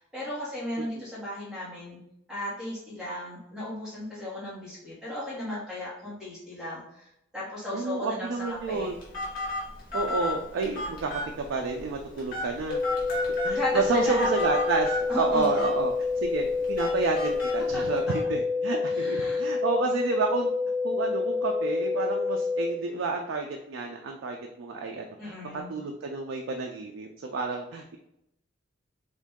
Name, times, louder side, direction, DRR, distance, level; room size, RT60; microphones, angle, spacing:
voice 1, 0.0-2.0 2.3-7.1 7.3-8.3 8.7-8.9 13.5-14.4 15.1-15.7 18.9-19.5 25.2-25.8, left 1 dB, 5° right, -8 dB, 1.4 m, -35 dB
voice 2, 7.7-9.0 9.9-11.1 11.5-12.8 13.1-13.2 13.4-15.9 16.2-20.5 20.8-28.0, right 4 dB, 85° right, 2 dB, 0.4 m, -30 dB
Telephone, 8.4-18.2, left 1 dB, 50° left, 1.4 m, -35 dB
sound 1, 12.7-22.7, left 4 dB, 70° left, 0.6 m, -28 dB
2.9 x 2.6 x 3.5 m, 0.79 s
head